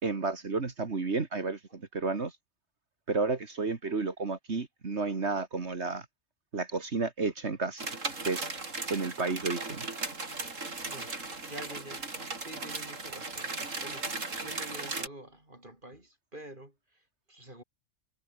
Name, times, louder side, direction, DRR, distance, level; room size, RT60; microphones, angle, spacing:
voice 1, 0.0-2.3 3.1-6.1 6.5-7.8 8.3-8.5 8.9-9.8, right 4 dB, 60° right, 2.4 m, -31 dB
sound 1, 7.8-15.1, right 3 dB, 80° right, 3.9 m, -37 dB
voice 2, 10.9-11.2 11.5-17.6, right 1 dB, 40° right, 6.6 m, -48 dB
omnidirectional pair, 1.3 m